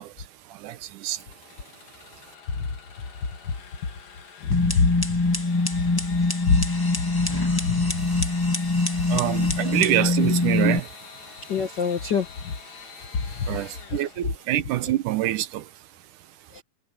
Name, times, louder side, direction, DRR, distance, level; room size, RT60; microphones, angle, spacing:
voice 1, 0.0-2.3 8.0-8.3 8.9-11.7 12.9-16.6, right 13 dB, 75° right, 2.4 m, -28 dB
Engine / Sawing, 1.0-14.7, left 6 dB, 90° left, 5.2 m, -46 dB
voice 2, 4.4-4.9 6.5-6.6 7.6-7.8 11.5-12.5 16.5-16.6, left 5 dB, 60° left, 1.1 m, -23 dB
sound 1, 4.5-10.8, left 2 dB, 10° left, 1.2 m, -24 dB
omnidirectional pair, 3.8 m